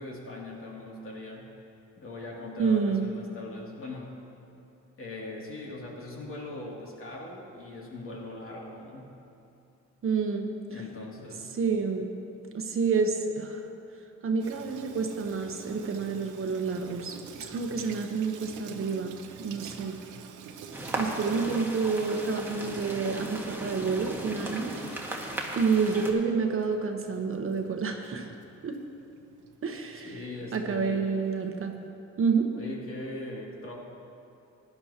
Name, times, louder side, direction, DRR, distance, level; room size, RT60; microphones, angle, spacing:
voice 1, 0.0-1.6 2.0-4.2 5.0-9.2 10.7-11.6 29.9-31.1 32.6-33.7, left 2 dB, 45° left, -3 dB, 2.6 m, -40 dB
voice 2, 2.6-3.1 10.0-10.8 11.5-12.1 12.5-13.6 14.2-20.0 20.9-24.7 25.5-28.3 28.6-28.8 29.6-30.2 30.5-31.8 32.2-32.5, right 5 dB, 45° right, 4 dB, 1.0 m, -29 dB
Water tap faucet / Sink (filling or washing), 14.4-31.9, right 6 dB, 80° right, 0.8 m, -49 dB
sound 1, 20.7-26.1, right 1 dB, 5° right, 1.5 m, -36 dB
16.0 x 11.0 x 2.9 m, 2.6 s
cardioid pair, 90°, 30 cm